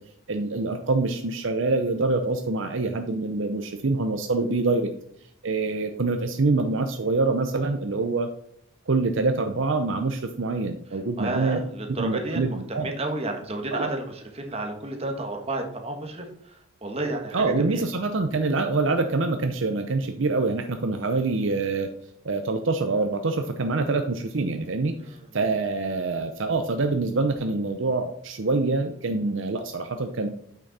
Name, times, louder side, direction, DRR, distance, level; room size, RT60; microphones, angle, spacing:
voice 1, 0.3-4.9 5.4-8.3 8.9-11.6 12.0-12.9 13.7-13.9 17.3-21.9 22.2-30.3, right 3 dB, 60° right, 6 dB, 0.6 m, -25 dB
voice 2, 11.2-16.6 16.8-17.8 25.1-25.2, right 2 dB, 30° right, 3 dB, 1.5 m, -31 dB
8.7 x 6.2 x 4.1 m, 0.71 s
head